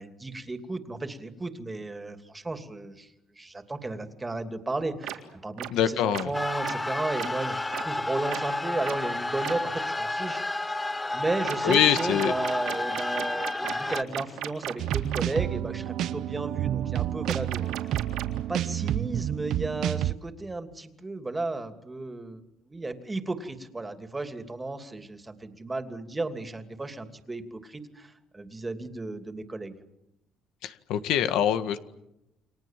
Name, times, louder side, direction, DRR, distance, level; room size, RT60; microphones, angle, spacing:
voice 1, 0.0-7.6 7.8-10.4 11.1-17.6 18.5-29.8, right 2 dB, 15° right, 7 dB, 2.8 m, -34 dB
sound 1, 5.0-5.1 5.6-5.7 6.1-6.2 6.6-6.7 7.2-7.3 7.7-7.8 8.3-8.4 8.8-9.0 9.4-9.5 11.4-15.2 17.2-18.4, right 14 dB, 90° right, 3.6 m, -34 dB
voice 2, 5.7-6.3 11.6-12.3 30.6-31.8, left 10 dB, 85° left, 10 dB, 1.7 m, -24 dB
sound 2, 6.3-14.0, left 2 dB, 15° left, 1.2 m, -31 dB
sound 3, 14.8-20.1, right 12 dB, 70° right, 1.0 m, -29 dB
30.0 x 24.0 x 7.6 m, 0.87 s
cardioid pair, 105°, 0 cm